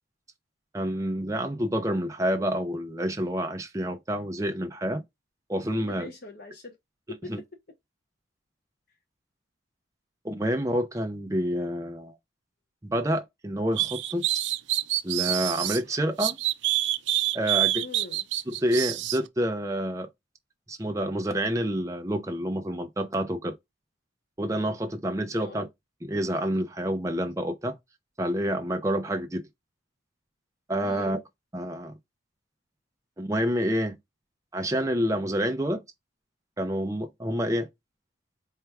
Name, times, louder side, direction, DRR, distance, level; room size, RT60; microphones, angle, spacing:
voice 1, 0.7-5.0 5.5-6.1 7.3-7.4 10.2-12.1 12.8-14.3 15.0-16.4 17.3-17.8 18.5-20.1 20.7-23.6 24.4-25.7 26.0-27.8 28.2-29.5 30.7-31.2 31.5-31.9 33.2-34.0 34.5-35.8 36.6-37.7, equal, 15° right, 0.6 m, -28 dB
voice 2, 5.9-6.8 7.2-7.3 17.7-18.2 25.3-25.7 30.8-31.1, left 2 dB, 50° left, 0.8 m, -42 dB
sound 1, 13.8-15.8 16.2-19.2, right 15 dB, 60° right, 0.4 m, -26 dB
4.5 x 2.2 x 3.4 m
head